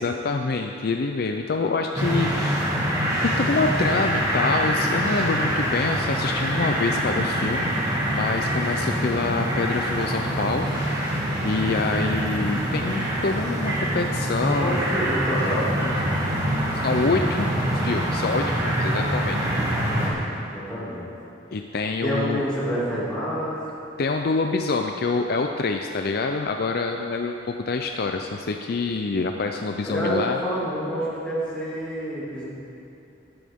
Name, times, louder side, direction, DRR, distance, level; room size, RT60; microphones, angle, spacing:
voice 1, 0.0-2.8 3.2-7.7 8.1-10.9 11.4-14.8 15.8-16.0 16.7-17.5 17.7-19.4 21.5-22.4 24.0-30.4, left 3 dB, 55° left, 4 dB, 0.5 m, -26 dB
sound 1, 1.9-20.1, right 1 dB, 20° right, 2.1 m, -25 dB
voice 2, 14.5-15.7 19.3-21.0 22.0-23.6 29.8-32.5, equal, 5° left, -10 dB, 2.5 m, -28 dB
13.5 x 12.5 x 3.6 m, 2.8 s
head